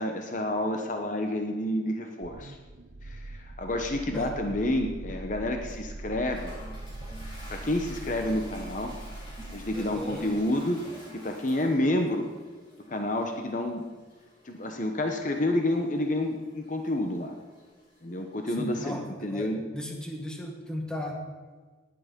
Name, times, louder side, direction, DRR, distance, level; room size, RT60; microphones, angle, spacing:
voice 1, 0.0-2.6 3.0-6.5 7.5-8.9 9.5-10.8 11.1-12.3 12.9-13.8 14.4-17.3 18.0-19.6, left 1 dB, 45° left, 4 dB, 1.0 m, -29 dB
sound 1, 2.2-10.4, right 2 dB, 70° right, 0.7 m, -42 dB
Toilet flush, 5.7-18.5, left 1 dB, 30° left, 5.6 m, -50 dB
voice 2, 9.7-10.3 18.6-21.2, equal, 5° left, 1 dB, 1.8 m, -37 dB
19.0 x 9.0 x 5.3 m, 1.4 s
head